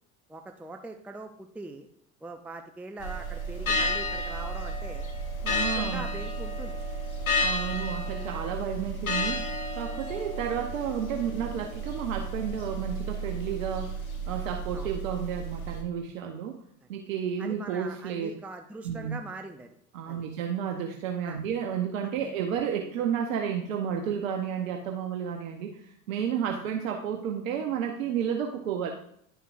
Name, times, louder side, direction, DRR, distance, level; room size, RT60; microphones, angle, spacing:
voice 1, 0.3-1.9 2.2-5.1 5.5-6.8 14.7-14.9 17.4-19.7 20.1-20.2 21.2-21.4 22.2-22.3, right 2 dB, 5° right, 5 dB, 0.5 m, -42 dB
sound 1, 3.0-15.8, equal, 85° left, 1.2 m, -32 dB
voice 2, 5.4-6.1 7.4-9.5 9.7-14.0 14.3-16.6 16.9-18.3 18.8-19.2 19.9-28.9, right 8 dB, 70° right, 3 dB, 0.9 m, -31 dB
11.0 x 5.6 x 2.5 m, 0.68 s
hypercardioid pair, 75°, 42 cm